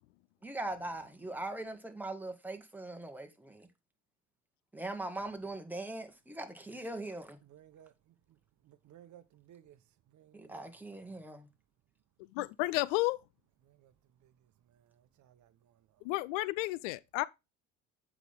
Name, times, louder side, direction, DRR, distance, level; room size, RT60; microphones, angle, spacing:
voice 1, 0.4-3.7 4.7-7.4 10.3-11.5, right 2 dB, 5° right, 1.9 m, -41 dB
voice 2, 7.4-8.4 8.6-9.8 10.1-11.2 13.6-13.9 14.2-14.3 14.7-15.8, right 11 dB, 50° right, 1.0 m, -60 dB
voice 3, 12.3-13.2 16.0-17.2, left 20 dB, 75° left, 0.6 m, -32 dB
8.1 x 5.9 x 3.6 m
hypercardioid pair, 70°, 37 cm